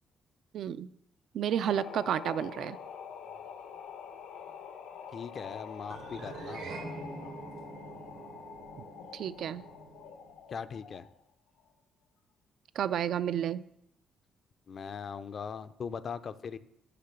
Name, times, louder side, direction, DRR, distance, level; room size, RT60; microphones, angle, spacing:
voice 1, 0.5-0.9 1.3-2.8 9.1-9.6 12.8-13.6, right 9 dB, 65° right, 14 dB, 0.3 m, -31 dB
sound 1, 1.5-11.2, left 7 dB, 85° left, 0.6 m, -46 dB
voice 2, 5.1-6.7 10.5-11.1 14.7-16.6, left 6 dB, 45° left, 14 dB, 0.4 m, -40 dB
sound 2, 5.9-10.4, right 3 dB, 80° right, 1.6 m, -45 dB
6.7 x 5.7 x 6.7 m, 0.78 s
cardioid pair, 125°, 0 cm